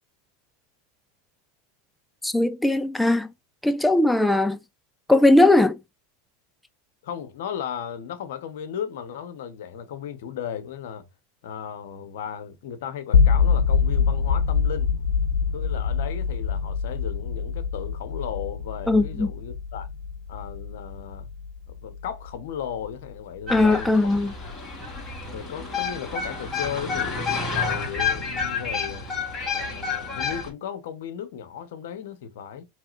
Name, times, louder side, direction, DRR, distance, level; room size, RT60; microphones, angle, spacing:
voice 1, 2.2-3.3 3.6-4.6 5.1-5.8 18.9-19.3 23.5-24.3, left 2 dB, 5° left, 0.4 m, -19 dB
voice 2, 7.0-11.0 11.4-15.0 15.5-19.9 20.3-21.3 21.7-24.2 25.3-29.1 29.5-32.7, left 8 dB, 70° left, 1.0 m, -35 dB
sound 1, 13.1-23.1, left 6 dB, 90° left, 0.5 m, -24 dB
sound 2, 23.5-30.5, left 5 dB, 20° left, 3.0 m, -29 dB
4.7 x 3.3 x 2.5 m
hypercardioid pair, 105°, 0 cm